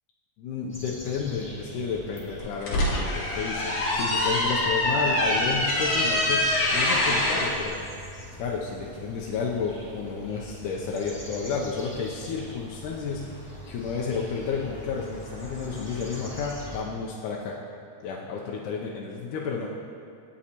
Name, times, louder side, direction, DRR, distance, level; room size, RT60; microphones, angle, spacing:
voice 1, 0.4-7.8 8.4-13.4 13.7-17.6 18.0-19.7, left 5 dB, 85° left, -3 dB, 2.2 m, -31 dB
sound 1, 0.7-16.8, equal, 10° left, 0.7 m, -43 dB
sound 2, 2.4-7.5, left 1 dB, 55° left, 2.6 m, -24 dB
17.0 x 6.4 x 2.9 m, 2.4 s
omnidirectional pair, 3.5 m